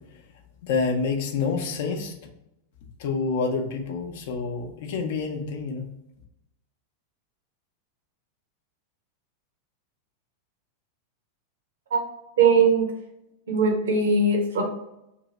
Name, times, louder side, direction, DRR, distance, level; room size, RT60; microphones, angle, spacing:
voice 1, 0.6-2.1 3.0-5.9, left 4 dB, 55° left, 3 dB, 0.6 m, -27 dB
voice 2, 12.4-12.9 13.5-14.6, right 4 dB, 60° right, 2 dB, 0.8 m, -20 dB
2.8 x 2.7 x 3.9 m, 0.84 s
figure-of-eight pair, 90°, 0 cm